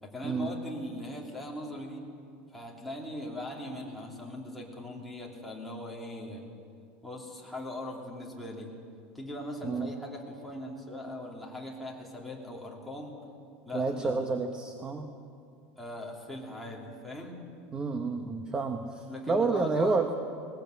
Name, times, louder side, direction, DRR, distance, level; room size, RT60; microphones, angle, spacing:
voice 1, 0.0-2.0 2.5-6.5 7.0-8.7 9.1-13.2 13.6-14.2 15.8-17.4 19.1-20.2, left 1 dB, ahead, -3 dB, 2.9 m, -40 dB
voice 2, 13.7-15.1 17.7-20.1, right 4 dB, 15° right, 6 dB, 1.0 m, -29 dB
19.5 x 19.5 x 8.1 m, 2.4 s
supercardioid pair, 160°, 6 cm